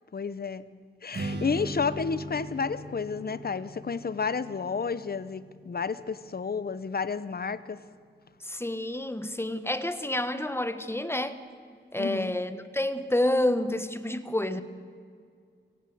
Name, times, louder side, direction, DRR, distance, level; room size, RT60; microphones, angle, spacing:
voice 1, 0.1-0.6 1.0-7.8 12.0-12.3, left 5 dB, 55° left, 15 dB, 0.9 m, -31 dB
Strum, 1.1-7.4, right 1 dB, 60° right, 2.0 m, -40 dB
voice 2, 8.4-11.4 11.9-14.6, left 1 dB, 10° left, 12 dB, 1.3 m, -29 dB
24.0 x 16.0 x 7.9 m, 2.1 s
wide cardioid pair, 85°, 19 cm